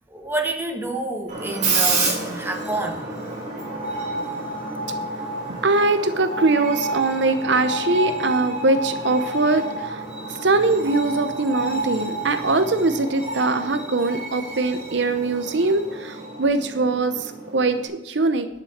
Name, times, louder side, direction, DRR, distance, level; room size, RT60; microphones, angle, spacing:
voice 1, 0.1-3.0, right 2 dB, 10° right, 2 dB, 1.5 m, -28 dB
Screech, 1.3-17.9, right 2 dB, 40° right, 3.7 m, -29 dB
voice 2, 5.5-10.0 10.3-18.5, right 3 dB, 70° right, 9 dB, 0.8 m, -22 dB
10.5 x 6.9 x 7.3 m, 0.99 s
head